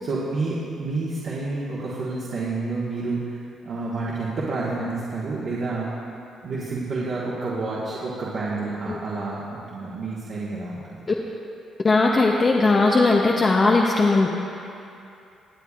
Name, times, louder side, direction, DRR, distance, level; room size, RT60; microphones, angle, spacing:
voice 1, 0.0-5.9 6.4-11.1, right 3 dB, 60° right, -7 dB, 1.5 m, -29 dB
voice 2, 11.8-14.3, left 3 dB, 35° left, -1 dB, 0.7 m, -18 dB
18.5 x 8.1 x 2.5 m, 2.7 s
cardioid pair, 90°, 0 cm